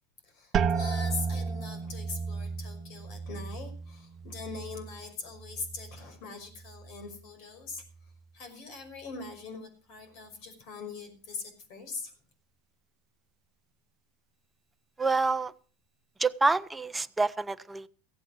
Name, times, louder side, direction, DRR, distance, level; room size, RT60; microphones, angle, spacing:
voice 1, 0.2-7.8 8.3-12.1, left 4 dB, 65° left, 8 dB, 5.5 m, -42 dB
sound 1, 0.5-6.2 6.5-7.2 7.7-8.2, right 5 dB, 40° right, 0.8 m, -34 dB
voice 2, 15.0-15.5 16.2-17.9, right 3 dB, 15° right, 13 dB, 0.8 m, -27 dB
16.0 x 8.4 x 6.3 m, 0.41 s
hypercardioid pair, 95°, 0 cm